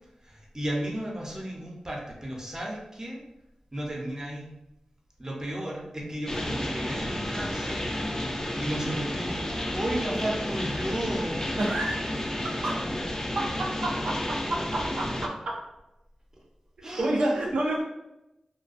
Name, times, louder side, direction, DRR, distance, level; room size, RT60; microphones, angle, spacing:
voice 1, 0.2-3.2 3.7-4.5 5.2-8.3 8.6-11.6 16.8-17.6, right 1 dB, 25° right, -3 dB, 0.7 m, -34 dB
sound 1, 6.3-15.3, left 1 dB, 25° left, 0.4 m, -31 dB
voice 2, 11.6-12.0 14.0-14.1 14.5-15.1 16.8-17.8, right 1 dB, 80° right, -3 dB, 0.4 m, -27 dB
2.3 x 2.2 x 2.4 m, 0.92 s
cardioid pair, 50°, 2 cm